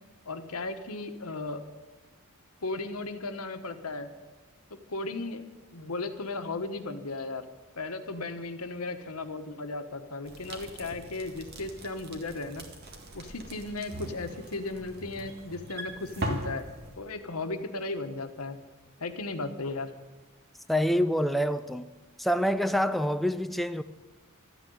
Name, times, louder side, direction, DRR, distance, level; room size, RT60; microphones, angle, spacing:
voice 1, 0.2-1.6 2.6-4.1 4.9-5.4 5.7-7.4 7.8-12.6 13.1-16.7 17.0-18.6 19.0-19.9, left 3 dB, 90° left, 1.3 m, -35 dB
sound 1, 10.3-16.9, right 1 dB, 50° right, 1.9 m, -40 dB
voice 2, 20.7-21.9 22.2-23.8, equal, ahead, 0.4 m, -26 dB
13.0 x 9.3 x 9.3 m
head